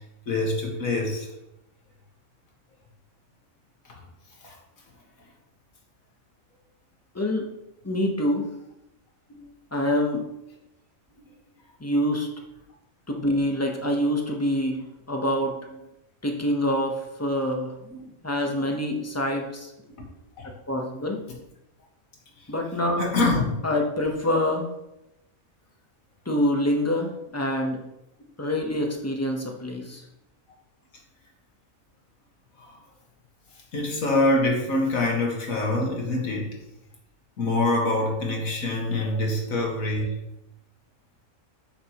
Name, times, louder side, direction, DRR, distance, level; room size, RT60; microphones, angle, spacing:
voice 1, 0.3-1.3 4.4-4.6 9.3-9.4 17.9-18.1 20.4-20.5 23.0-23.6 32.6-32.7 33.7-36.5 37.4-40.2, left 2 dB, 75° left, 0 dB, 2.1 m, -25 dB
voice 2, 7.1-7.5 7.8-8.5 9.7-10.2 11.8-12.3 13.1-15.6 16.2-19.7 20.4-21.2 22.5-23.1 23.6-24.7 26.3-27.8 28.4-30.0, left 1 dB, 10° left, 1 dB, 0.9 m, -26 dB
8.8 x 6.5 x 3.0 m, 0.87 s
omnidirectional pair, 1.5 m